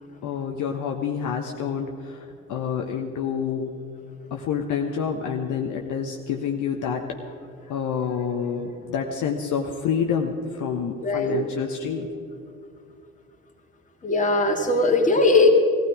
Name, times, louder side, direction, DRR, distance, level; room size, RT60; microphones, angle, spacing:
voice 1, 0.2-3.7 4.3-7.3 7.6-12.1, left 7 dB, 55° left, 2 dB, 1.2 m, -28 dB
voice 2, 11.0-11.4 14.0-15.5, left 2 dB, 20° left, 2 dB, 2.4 m, -19 dB
18.0 x 15.0 x 5.0 m, 2.4 s
hypercardioid pair, 55°, 37 cm